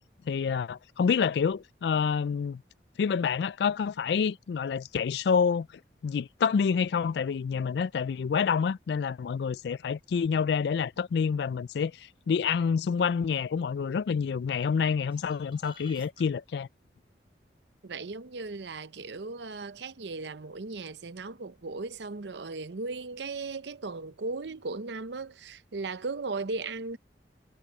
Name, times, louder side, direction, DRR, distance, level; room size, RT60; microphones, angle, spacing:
voice 1, 0.2-2.6 3.0-5.7 6.0-16.7, left 6 dB, 65° left, 0.3 m, -28 dB
sound 1, 14.8-16.3 21.1-21.2, right 5 dB, 30° right, 7.1 m, -56 dB
voice 2, 17.8-27.0, right 3 dB, 75° right, 0.7 m, -37 dB
head